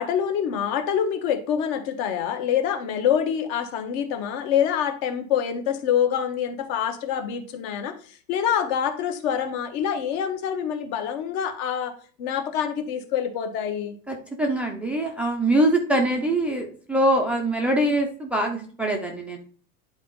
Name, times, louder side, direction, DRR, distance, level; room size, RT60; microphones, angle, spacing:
voice 1, 0.0-7.9 8.3-13.9, left 8 dB, 50° left, 7 dB, 1.2 m, -26 dB
voice 2, 14.1-19.4, right 1 dB, 5° right, 0 dB, 0.4 m, -23 dB
10.5 x 3.9 x 3.7 m, 0.43 s
supercardioid pair, 175°, 34 cm